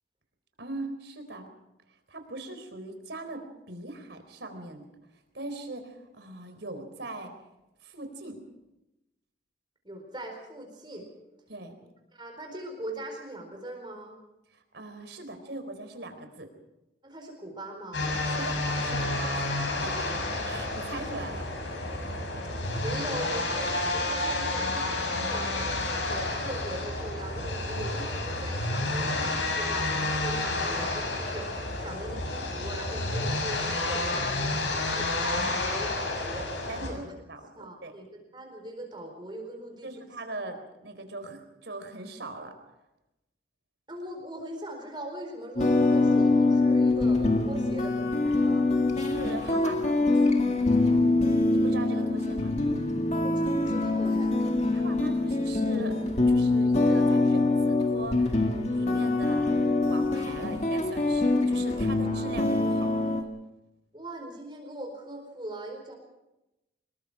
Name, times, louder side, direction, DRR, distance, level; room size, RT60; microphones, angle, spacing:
voice 1, 0.6-1.5 2.1-4.9 5.3-7.3 7.8-8.4 11.5-11.7 14.5-16.5 18.3-19.5 19.8-20.2 20.4-21.5 36.7-37.0 37.3-37.9 39.8-42.5 48.9-50.5 51.1-51.2 51.5-52.5 54.4-56.0 56.3-62.9, right 2 dB, 70° right, 7 dB, 4.1 m, -40 dB
voice 2, 9.8-11.1 12.1-14.2 17.0-18.1 19.3-19.6 22.4-37.1 37.6-39.9 43.9-48.7 53.1-54.4 63.9-66.0, right 1 dB, 25° right, 2 dB, 4.4 m, -40 dB
sound 1, 17.9-36.9, left 2 dB, 85° left, 7.0 m, -30 dB
sound 2, 45.6-63.2, left 2 dB, 40° left, 2.2 m, -24 dB
26.0 x 22.0 x 4.9 m, 0.95 s
head